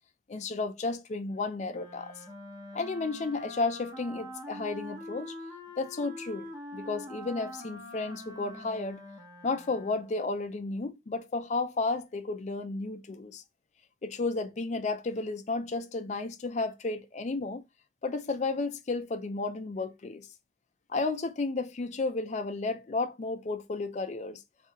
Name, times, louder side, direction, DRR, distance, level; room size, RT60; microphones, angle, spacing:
voice 1, 0.3-2.1 2.7-5.4 5.8-9.0 9.4-13.4 14.0-17.6 18.0-20.3 20.9-24.4, left 3 dB, 40° left, 0.4 m, -33 dB
Wind instrument woodwind instrument, 1.7-10.2, left 1 dB, 20° right, 0.9 m, -44 dB
2.7 x 2.4 x 4.2 m
head